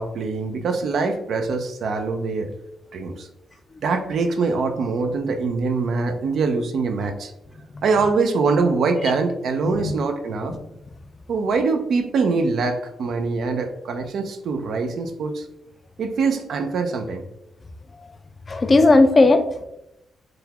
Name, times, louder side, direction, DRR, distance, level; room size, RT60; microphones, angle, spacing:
voice 1, 0.0-2.5 2.9-3.3 3.8-7.3 7.8-10.5 11.3-15.5 16.0-17.2, right 4 dB, 70° right, 5 dB, 0.4 m, -23 dB
voice 2, 18.5-19.7, left 2 dB, 35° left, 8 dB, 0.4 m, -16 dB
3.8 x 2.3 x 2.8 m, 0.87 s
cardioid pair, 70°, 0 cm